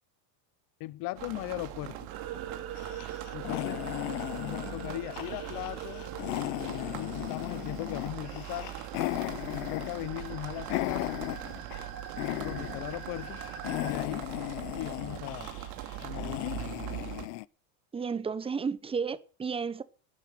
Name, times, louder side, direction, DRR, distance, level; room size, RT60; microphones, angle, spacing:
voice 1, 0.8-2.1 3.3-3.8 4.3-6.1 6.7-8.8 9.4-11.1 12.4-13.4 13.7-14.3 14.7-15.6 16.0-16.7, left 19 dB, 50° left, 0.8 m, -38 dB
sound 1, 1.2-17.3, right 13 dB, 70° right, 2.4 m, -41 dB
sound 2, 2.1-13.9, right 8 dB, 55° right, 4.3 m, -45 dB
sound 3, 2.8-11.9 12.2-13.0 13.3-17.5, left 22 dB, 80° left, 0.7 m, -36 dB
voice 2, 17.9-19.8, right 5 dB, 10° right, 0.8 m, -32 dB
12.0 x 10.0 x 9.2 m
supercardioid pair, 130°, 45 cm